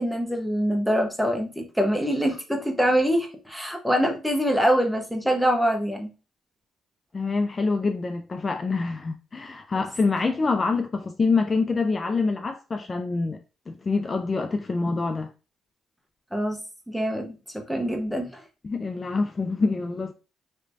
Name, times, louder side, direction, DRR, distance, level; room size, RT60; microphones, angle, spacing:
voice 1, 0.0-6.1 9.8-9.9 16.3-16.6 16.9-18.4, equal, ahead, 0.9 m, -24 dB
voice 2, 7.1-13.4 13.7-15.3 18.6-20.1, left 4 dB, 30° left, 0.3 m, -26 dB
3.3 x 3.0 x 2.6 m
cardioid pair, 90°, 0 cm